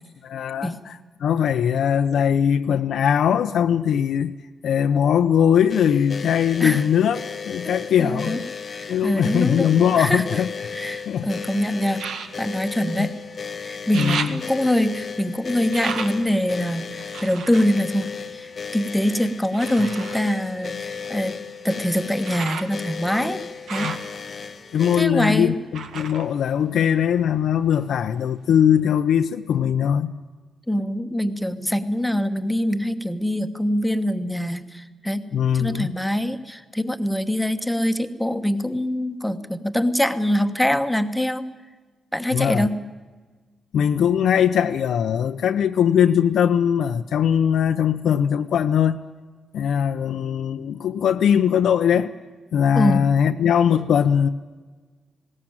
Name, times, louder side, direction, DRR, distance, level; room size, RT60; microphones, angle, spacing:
voice 1, 0.2-4.3 4.6-8.4 8.9-10.5 11.1-11.3 13.0-13.1 13.9-14.4 23.8-24.0 24.7-30.1 35.3-35.9 42.3-42.7 43.7-49.0 49.5-52.1 52.5-54.3, left 8 dB, 80° left, 7 dB, 0.7 m, -20 dB
sound 1, 5.7-25.0, left 6 dB, 40° left, 0.8 m, -35 dB
voice 2, 7.6-8.4 8.7-10.4 10.7-12.0 12.4-13.1 13.6-21.4 21.6-23.4 23.7-23.9 25.0-25.5 30.7-35.2 35.5-41.4 42.1-42.8 52.7-53.1, equal, ahead, 9 dB, 1.1 m, -24 dB
sound 2, 9.8-11.1 11.9-13.5 13.7-18.9 19.5-27.4 27.7-28.5 29.0-29.1, right 6 dB, 80° right, 1.7 m, -36 dB
20.0 x 17.5 x 8.9 m, 1.4 s
wide cardioid pair, 150°, 0 cm